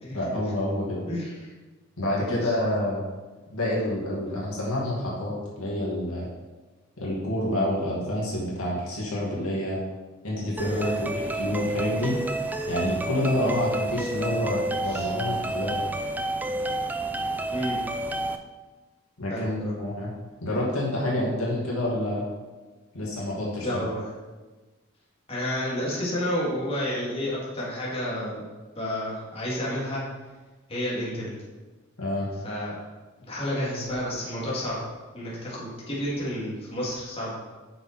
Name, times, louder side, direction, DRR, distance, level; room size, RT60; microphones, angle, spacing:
voice 1, 0.1-1.0 2.0-3.0 3.5-6.3 7.0-9.8 10.2-12.1 12.7-15.8 19.2-20.1 20.4-22.2 22.9-23.9 32.0-32.3, left 1 dB, 85° left, -5 dB, 2.3 m, -28 dB
voice 2, 1.1-1.5 2.1-2.5 10.6-10.9 13.4-13.5 14.9-15.1 17.5-17.8 19.3-19.7 23.6-24.1 25.3-28.4 28.8-30.1 30.7-31.4 32.4-32.7 33.3-34.8 35.1-37.4, equal, 30° left, -7 dB, 2.3 m, -30 dB
sound 1, 10.6-18.4, right 2 dB, 10° right, 0.3 m, -30 dB
6.7 x 6.0 x 4.4 m, 1.2 s
head